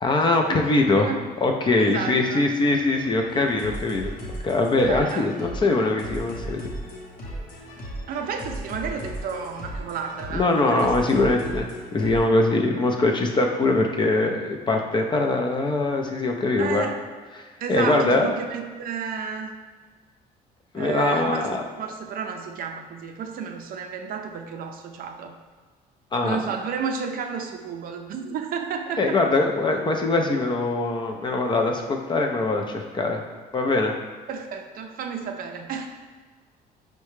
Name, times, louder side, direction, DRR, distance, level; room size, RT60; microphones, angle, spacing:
voice 1, 0.0-1.1 1.4-4.1 4.4-6.7 10.3-11.7 11.9-16.9 17.3-17.4 17.7-18.3 20.7-21.6 26.1-26.4 29.0-33.2 33.5-33.9, left 2 dB, 25° left, 2 dB, 0.4 m, -22 dB
voice 2, 1.8-2.5 4.8-5.3 8.1-10.9 16.6-17.0 17.6-19.6 20.7-25.4 26.2-29.3 34.3-35.9, right 6 dB, 60° right, 4 dB, 0.4 m, -32 dB
sound 1, 2.5-12.3, right 1 dB, 55° left, 0.9 m, -36 dB
4.6 x 2.2 x 3.1 m, 1.5 s
cardioid pair, 110°, 17 cm